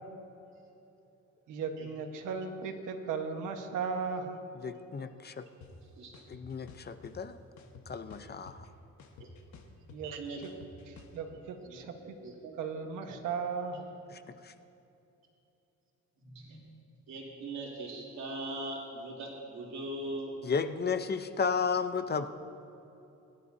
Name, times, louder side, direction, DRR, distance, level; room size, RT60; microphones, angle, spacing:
voice 1, 1.5-4.4 9.9-10.3 10.9-12.1 12.6-13.9, right 5 dB, 85° right, 4 dB, 1.4 m, -36 dB
voice 2, 4.6-5.5 6.3-7.4 7.9-8.7 14.1-14.5 20.4-22.3, left 5 dB, 35° left, 10 dB, 0.7 m, -33 dB
sound 1, 5.6-5.7 6.1-7.1 7.6-8.7 9.0-11.2, left 5 dB, 70° left, 1.4 m, -52 dB
voice 3, 11.6-12.5 13.7-13.8 16.2-16.7 17.1-20.3, right 1 dB, 65° right, -4 dB, 3.2 m, -41 dB
22.5 x 11.5 x 2.8 m, 2.8 s
cardioid pair, 90°, 30 cm